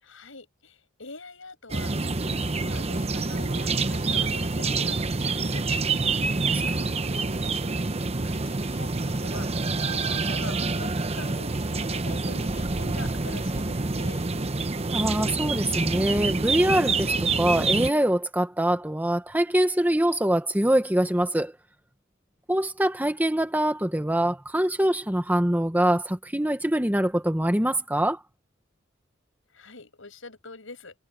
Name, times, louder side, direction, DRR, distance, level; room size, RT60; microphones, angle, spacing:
voice 1, 0.0-1.9 2.2-5.6 8.2-9.5 9.8-14.3 29.5-30.9, left 3 dB, 75° left, 7.5 m, -44 dB
sound 1, 1.7-17.9, right 3 dB, 30° right, 0.9 m, -27 dB
voice 2, 6.4-6.8 14.9-21.5 22.5-28.2, right 1 dB, 10° right, 1.4 m, -24 dB
head